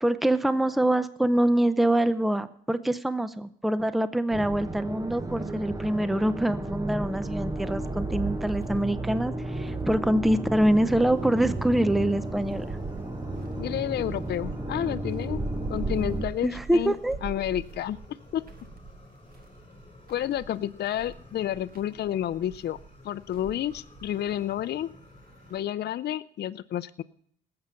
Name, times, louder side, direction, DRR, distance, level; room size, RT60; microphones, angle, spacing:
voice 1, 0.0-12.7 16.4-17.2, right 1 dB, ahead, 13 dB, 0.6 m, -25 dB
sound 1, 4.3-16.3, right 2 dB, 15° right, 1.0 m, -33 dB
sound 2, 7.0-25.6, right 4 dB, 50° right, 1.5 m, -45 dB
Fire, 10.5-25.6, left 3 dB, 30° left, 3.5 m, -53 dB
voice 2, 13.6-15.4 15.7-16.9 17.2-18.4 20.1-22.8 23.0-24.9 25.5-27.0, left 11 dB, 55° left, 13 dB, 0.5 m, -30 dB
18.5 x 7.7 x 5.7 m, 0.67 s
cardioid pair, 90°, 20 cm